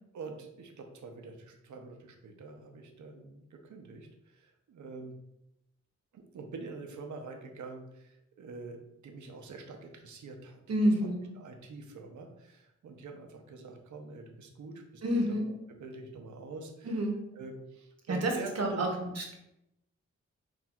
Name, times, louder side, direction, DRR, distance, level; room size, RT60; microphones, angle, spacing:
voice 1, 0.1-5.2 6.1-10.6 11.3-15.0 15.3-15.4 15.8-16.9 17.3-18.9, right 3 dB, 85° right, 3 dB, 0.7 m, -45 dB
voice 2, 10.7-11.3 15.0-15.5 16.8-17.2 18.1-18.9 19.2-19.4, right 1 dB, 60° right, 1 dB, 0.9 m, -29 dB
5.9 x 2.5 x 2.3 m, 0.85 s
cardioid pair, 65°, 29 cm